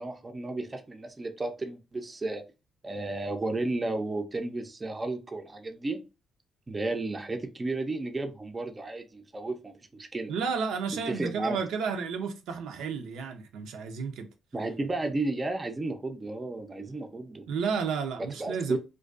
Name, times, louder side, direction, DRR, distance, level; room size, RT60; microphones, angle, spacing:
voice 1, 0.0-2.4 2.8-6.0 6.7-10.3 11.1-11.6 14.5-17.5 18.3-18.8, right 2 dB, 25° right, 0.4 m, -33 dB
voice 2, 10.3-14.3 17.5-18.8, right 5 dB, 85° right, 0.4 m, -32 dB
2.4 x 2.2 x 2.3 m
cardioid pair, 90°, 0 cm